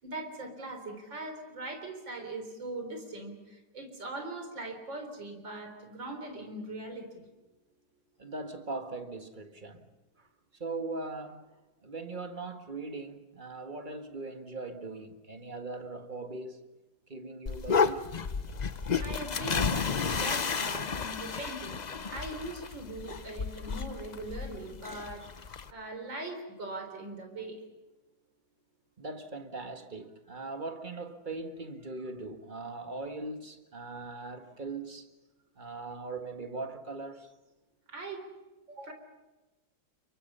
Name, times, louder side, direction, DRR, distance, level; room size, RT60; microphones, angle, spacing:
voice 1, 0.0-7.2 19.0-21.8 22.1-25.3 25.7-27.6 37.9-38.2 38.7-38.9, right 2 dB, 75° right, 4.5 m, -41 dB
voice 2, 8.2-9.9 10.2-10.3 10.5-11.4 11.8-16.6 17.1-18.1 29.0-35.1 35.6-37.3, right 3 dB, 25° right, 1.7 m, -40 dB
sound 1, 17.5-25.7, left 5 dB, 85° left, 0.3 m, -32 dB
29.5 x 23.0 x 5.6 m
omnidirectional pair, 2.0 m